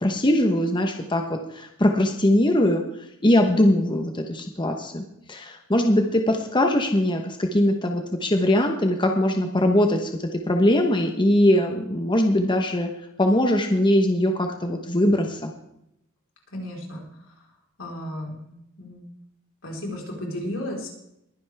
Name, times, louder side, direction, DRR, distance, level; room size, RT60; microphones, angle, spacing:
voice 1, 0.0-2.8 3.2-12.9 13.2-15.5, left 1 dB, 25° left, 4 dB, 1.1 m, -21 dB
voice 2, 16.5-17.0 17.8-18.5 18.8-19.0 19.6-20.9, left 1 dB, 80° left, -1 dB, 4.2 m, -33 dB
21.5 x 10.5 x 3.5 m, 0.80 s
head